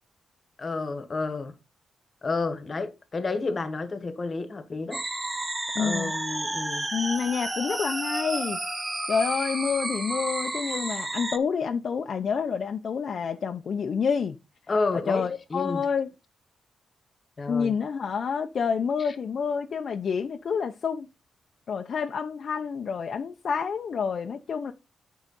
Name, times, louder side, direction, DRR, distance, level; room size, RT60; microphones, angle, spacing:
voice 1, 0.6-1.5 2.2-5.0 5.8-6.9 14.7-15.9 17.4-17.7, left 3 dB, 30° left, 1.2 m, -30 dB
sound 1, 4.9-11.4, right 2 dB, 15° right, 0.8 m, -31 dB
voice 2, 5.7-6.1 6.9-8.6 9.1-14.4 14.9-16.1 17.5-21.1 21.7-24.7, left 6 dB, 50° left, 0.6 m, -28 dB
9.1 x 4.7 x 5.4 m
wide cardioid pair, 140°, 0 cm